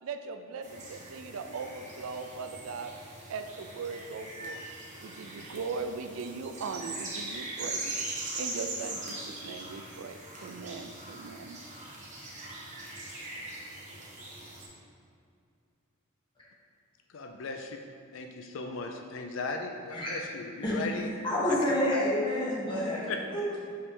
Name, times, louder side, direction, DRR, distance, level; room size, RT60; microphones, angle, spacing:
voice 1, 0.0-2.9 3.3-4.6 5.0-8.0 8.4-11.6, right 4 dB, 80° right, 8 dB, 0.4 m, -39 dB
sound 1, 0.6-14.7, right 2 dB, 35° right, 0.9 m, -41 dB
voice 2, 17.1-17.8 18.1-21.1 21.4-22.0 23.1-23.2, left 3 dB, 65° left, 4 dB, 0.4 m, -37 dB
voice 3, 21.2-23.6, left 1 dB, 20° left, -7 dB, 1.4 m, -29 dB
5.5 x 3.3 x 5.3 m, 2.4 s
head